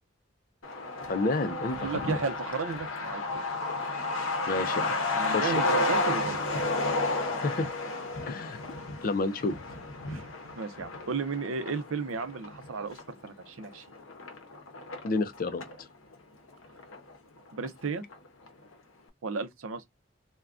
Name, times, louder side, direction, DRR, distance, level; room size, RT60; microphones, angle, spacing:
Truck, 0.6-15.8 16.1-16.2 16.5-17.4 17.6-17.7 18.1-18.5, left 2 dB, 80° left, 0.7 m, -32 dB
voice 1, 1.1-1.9 4.5-4.9 5.3-5.8 7.4-7.7 8.2-8.6 9.0-9.5 15.0-15.9, left 3 dB, 40° left, 0.4 m, -30 dB
voice 2, 1.8-3.2 5.2-6.4 10.1-10.3 10.5-13.8 17.5-18.0 19.2-19.9, right 4 dB, 80° right, 0.6 m, -34 dB
3.4 x 2.2 x 2.4 m
head